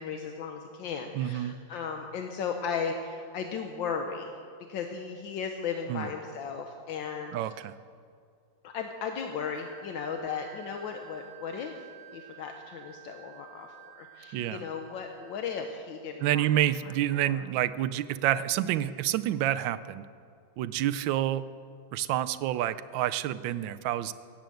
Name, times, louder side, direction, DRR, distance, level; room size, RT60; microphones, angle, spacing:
voice 1, 0.0-4.3 4.7-7.4 8.6-11.8 12.1-16.5 16.8-17.5, left 6 dB, 80° left, 4 dB, 1.6 m, -36 dB
voice 2, 1.1-1.6 5.9-6.1 7.3-7.7 14.3-14.6 16.2-20.0 20.6-21.4 21.9-24.1, right 12 dB, 85° right, 14 dB, 1.3 m, -28 dB
Wind instrument woodwind instrument, 9.6-15.7, right 12 dB, 25° right, 1.2 m, -52 dB
17.5 x 9.1 x 7.7 m, 2.2 s
omnidirectional pair, 2.0 m